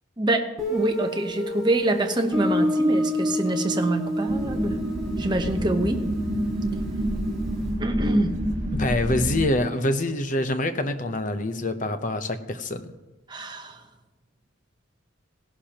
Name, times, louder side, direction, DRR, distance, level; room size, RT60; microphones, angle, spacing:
voice 1, 0.2-4.8 5.2-6.0 7.8-8.3 13.3-13.8, right 1 dB, 20° right, 5 dB, 0.9 m, -25 dB
Guitar, 0.6-7.2, equal, ahead, 4.3 m, -28 dB
sound 1, 4.3-9.4, right 1 dB, 40° right, 1.6 m, -28 dB
voice 2, 8.7-12.9, left 1 dB, 40° left, 9 dB, 0.8 m, -26 dB
17.5 x 11.5 x 3.0 m, 1.1 s
head